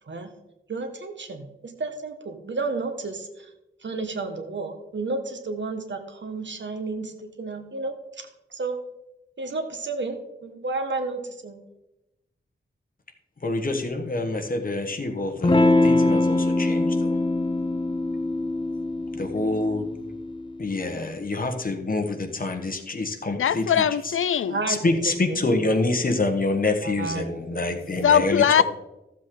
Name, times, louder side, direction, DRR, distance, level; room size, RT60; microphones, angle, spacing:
voice 1, 0.7-3.5 3.8-8.8 9.4-11.6 24.5-24.8 25.3-25.6 26.8-27.9, right 3 dB, 60° right, 1.3 m, -32 dB
voice 2, 13.4-17.2 19.1-19.8 20.6-23.8 24.7-28.6, left 2 dB, 45° left, 1.3 m, -26 dB
Electric guitar / Strum, 15.4-20.5, left 2 dB, 25° left, 0.6 m, -23 dB
voice 3, 23.3-24.6 28.0-28.6, left 8 dB, 85° left, 0.4 m, -20 dB
14.0 x 7.5 x 3.8 m
wide cardioid pair, 115°, 21 cm